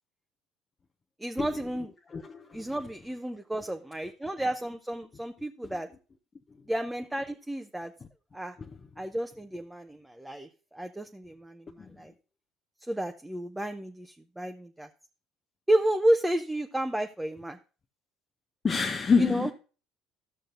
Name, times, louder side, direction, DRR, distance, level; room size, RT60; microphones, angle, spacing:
voice 1, 1.2-1.9 2.5-5.9 6.7-7.9 8.3-8.6 9.0-12.1 12.9-14.9 15.7-17.6 19.2-19.5, right 1 dB, 10° right, 0.6 m, -31 dB
voice 2, 2.1-2.6 11.8-11.9 18.6-19.5, left 5 dB, 30° left, 0.7 m, -26 dB
14.0 x 6.5 x 2.5 m
hypercardioid pair, 60°, 0 cm